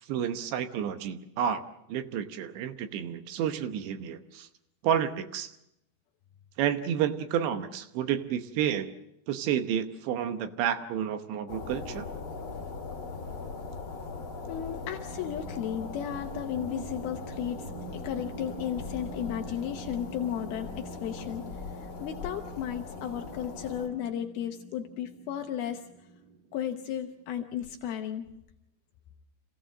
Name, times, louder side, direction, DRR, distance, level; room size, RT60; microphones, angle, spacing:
voice 1, 0.0-1.6 1.9-4.5 4.8-5.6 6.6-8.9 9.3-12.1, right 9 dB, 75° right, 8 dB, 3.0 m, -30 dB
sound 1, 11.5-23.9, left 4 dB, 35° left, 2.6 m, -40 dB
voice 2, 14.5-25.8 26.5-28.3, left 10 dB, 85° left, 4 dB, 2.1 m, -34 dB
sound 2, 15.1-27.3, right 5 dB, 90° right, 1.8 m, -46 dB
27.5 x 16.5 x 7.6 m, 0.84 s
omnidirectional pair, 5.7 m